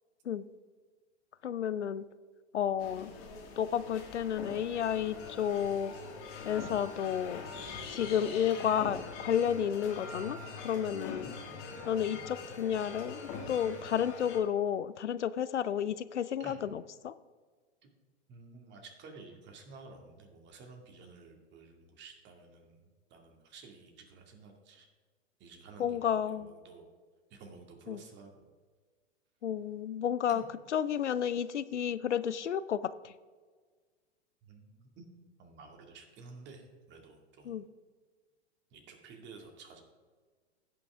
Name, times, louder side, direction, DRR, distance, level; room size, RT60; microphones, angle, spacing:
voice 1, 1.4-2.0 2.5-3.1 3.6-5.9 6.4-7.5 7.9-10.4 10.6-11.4 11.9-13.2 13.5-17.1 25.8-26.5 27.9-28.0 29.4-30.4 30.7-33.1 37.5-37.6, left 9 dB, 85° left, 16 dB, 0.6 m, -31 dB
sound 1, 2.8-14.4, left 4 dB, 45° left, 2.1 m, -43 dB
voice 2, 11.2-11.5 16.4-16.6 17.8-17.9 18.3-24.9 25.4-26.9 27.3-28.5 30.3-30.4 34.4-35.1 35.4-37.6 38.7-39.8, right 4 dB, 30° right, 2 dB, 2.1 m, -52 dB
16.0 x 6.0 x 3.6 m, 1.5 s
hypercardioid pair, 105°, 34 cm